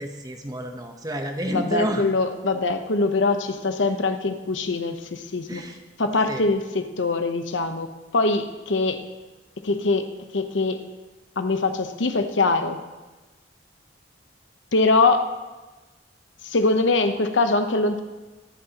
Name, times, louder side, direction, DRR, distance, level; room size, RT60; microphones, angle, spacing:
voice 1, 0.0-2.1 5.5-5.8 6.3-6.4, right 1 dB, 20° right, 5 dB, 1.0 m, -30 dB
voice 2, 1.5-5.6 6.0-7.9 8.1-9.0 9.6-10.8 11.4-12.8 14.7-15.3 16.4-18.0, left 3 dB, 90° left, 7 dB, 0.9 m, -23 dB
24.0 x 9.6 x 3.0 m, 1.2 s
head